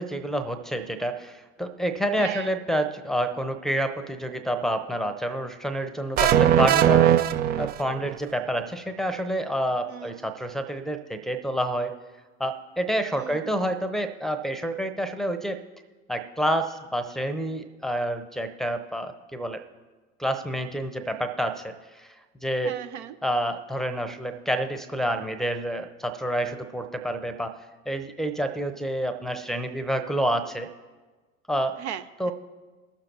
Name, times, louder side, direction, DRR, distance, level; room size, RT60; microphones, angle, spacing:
voice 1, 0.0-7.2 7.6-11.9 12.4-15.6 16.1-19.6 20.2-22.1 22.4-22.8 23.2-27.6 27.9-30.7 31.5-31.8 32.2-32.3, right 1 dB, ahead, 5 dB, 0.8 m, -28 dB
voice 2, 2.2-2.5 9.9-10.3 13.2-13.7 22.6-23.1 31.8-32.3, right 9 dB, 60° right, 9 dB, 0.7 m, -38 dB
sound 1, 6.2-8.2, right 11 dB, 25° right, 0.4 m, -19 dB
21.0 x 7.0 x 2.9 m, 1.3 s
figure-of-eight pair, 75°, 38 cm